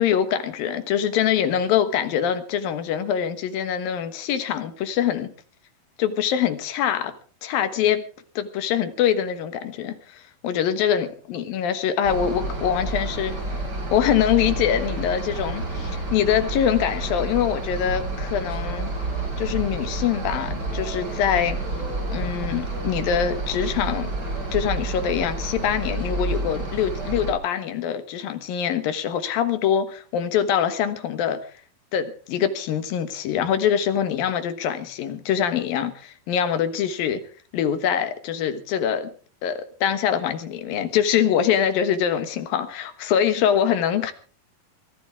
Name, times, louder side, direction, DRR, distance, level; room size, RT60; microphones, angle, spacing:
voice 1, 0.0-5.3 6.0-7.1 7.4-8.0 8.4-13.4 13.9-18.9 19.4-21.6 22.1-24.1 24.5-31.4 31.9-37.2 37.5-39.1 39.4-44.1, left 9 dB, 75° left, 3.2 m, -24 dB
sound 1, 12.0-27.3, right 2 dB, 25° right, 4.7 m, -29 dB
23.0 x 15.0 x 3.6 m
omnidirectional pair, 4.2 m